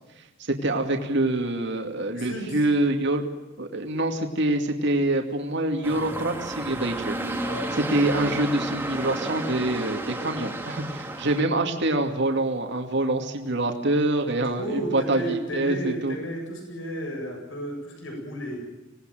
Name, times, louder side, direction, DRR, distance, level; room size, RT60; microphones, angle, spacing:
voice 1, 0.4-3.2 3.6-7.2 7.9-16.2, right 2 dB, 60° right, 3 dB, 2.5 m, -25 dB
voice 2, 2.1-2.6 7.4-7.8 14.4-18.6, right 1 dB, 75° left, 2 dB, 8.0 m, -33 dB
sound 1, 5.8-11.4, right 1 dB, 10° right, 2.1 m, -32 dB
25.5 x 19.0 x 9.2 m, 1.1 s
head